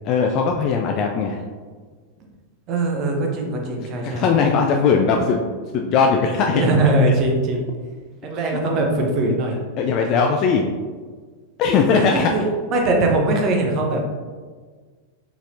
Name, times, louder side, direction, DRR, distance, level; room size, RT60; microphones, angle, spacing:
voice 1, 0.0-1.4 4.0-5.4 5.7-6.6 9.8-10.7 11.6-12.3, left 5 dB, 40° left, 2 dB, 0.3 m, -19 dB
voice 2, 2.7-4.2 6.5-7.6 8.2-9.6 11.9-12.4 12.7-14.0, right 2 dB, 35° right, 1 dB, 0.8 m, -21 dB
4.6 x 4.0 x 2.6 m, 1.5 s
figure-of-eight pair, 90°, 0 cm